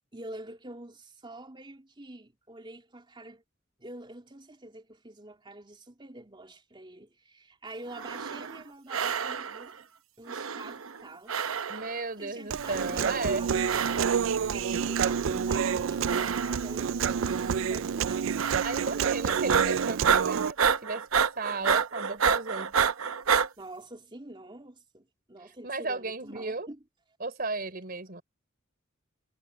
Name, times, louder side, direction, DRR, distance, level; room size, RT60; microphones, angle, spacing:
voice 1, 0.1-3.4 3.8-9.7 10.2-11.5 11.9-13.5 14.5-18.3 23.6-26.8, right 1 dB, 25° right, 3.4 m, -46 dB
sound 1, 7.9-8.6 8.9-9.7 10.3-11.0 11.3-12.0 12.6-13.2 13.6-14.3 14.9-15.5 16.0-16.8 17.2-17.7 18.4-19.0 19.3-23.5, right 6 dB, 85° right, 0.9 m, -29 dB
voice 2, 11.7-13.5 18.4-22.7 25.6-26.7 27.2-28.2, right 3 dB, 45° right, 3.6 m, -34 dB
Human voice, 12.5-20.5, right 7 dB, 65° right, 0.4 m, -28 dB
head